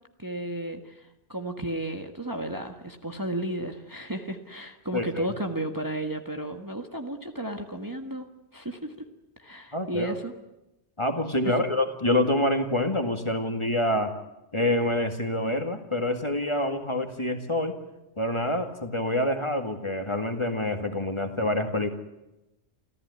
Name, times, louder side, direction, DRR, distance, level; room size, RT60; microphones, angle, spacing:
voice 1, 0.2-8.3 8.5-9.1 9.4-10.3 11.4-11.5, right 1 dB, 15° right, 5 dB, 1.6 m, -33 dB
voice 2, 4.9-5.3 9.7-10.1 11.0-14.1 14.5-17.8 18.2-21.9, left 1 dB, 25° left, 6 dB, 2.1 m, -26 dB
28.5 x 15.0 x 9.7 m, 0.95 s
omnidirectional pair, 1.2 m